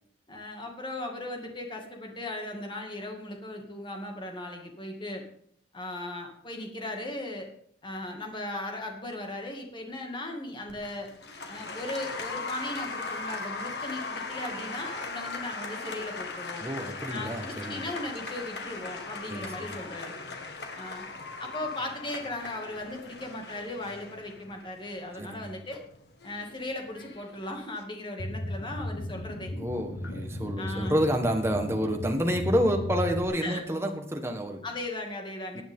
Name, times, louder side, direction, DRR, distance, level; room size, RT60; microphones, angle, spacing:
voice 1, 0.3-5.3 5.7-7.5 7.8-11.1 11.5-16.7 17.1-20.1 20.7-21.1 21.4-25.8 26.2-29.5 30.6-31.0 33.4-33.6 34.6-35.6, left 1 dB, 25° left, 2 dB, 2.3 m, -37 dB
Applause, 10.7-27.8, left 3 dB, 65° left, 1.9 m, -39 dB
voice 2, 16.6-17.8 19.3-19.7 25.2-25.5 29.6-34.6 35.5-35.6, equal, 15° right, 3 dB, 1.5 m, -29 dB
sound 1, 28.2-33.2, left 1 dB, 85° left, 1.2 m, -35 dB
18.5 x 9.2 x 3.8 m, 0.66 s
head